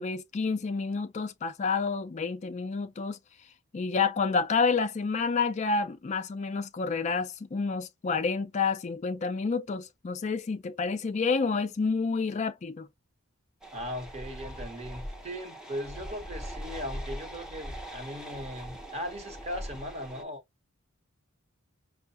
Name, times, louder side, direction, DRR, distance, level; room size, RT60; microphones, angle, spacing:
voice 1, 0.0-3.2 3.7-12.9, left 4 dB, 35° left, 0.3 m, -29 dB
sound 1, 13.6-20.2, equal, 5° right, 0.7 m, -41 dB
voice 2, 13.7-20.4, equal, 30° right, 1.0 m, -38 dB
5.5 x 2.1 x 2.8 m
head